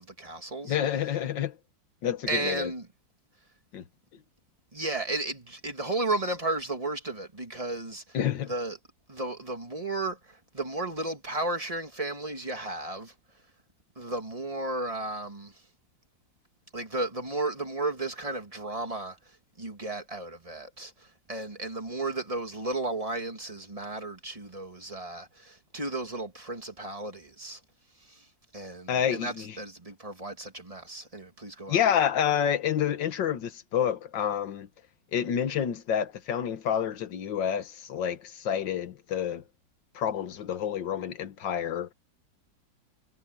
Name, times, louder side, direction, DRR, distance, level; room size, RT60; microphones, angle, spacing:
voice 1, 0.0-0.8 2.3-2.9 4.7-8.2 8.5-8.8 9.1-13.1 14.0-15.6 16.7-27.6 28.0-28.3 28.5-31.8, right 2 dB, 20° right, 2.7 m, -34 dB
voice 2, 0.6-1.6 2.0-2.7 3.7-3.8 8.1-8.5 28.9-29.6 31.7-34.7 35.1-39.4 39.9-41.9, left 9 dB, 90° left, 1.9 m, -28 dB
omnidirectional pair, 1.9 m